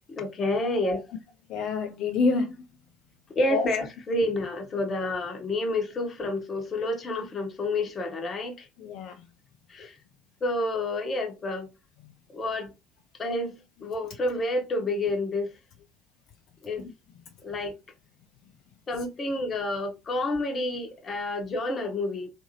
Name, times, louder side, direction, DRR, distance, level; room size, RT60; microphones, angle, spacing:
voice 1, 0.2-1.0 3.4-8.7 9.7-9.9 10.4-11.7 12.3-12.7 13.2-15.5 16.6-16.9 17.4-17.8 18.9-22.3, left 2 dB, 35° left, 0.8 m, -29 dB
voice 2, 1.5-2.6 3.5-3.7 8.8-9.2 12.0-12.1 16.8-16.9, left 4 dB, 55° left, 0.3 m, -28 dB
2.7 x 2.5 x 2.7 m
figure-of-eight pair, 60°, 0 cm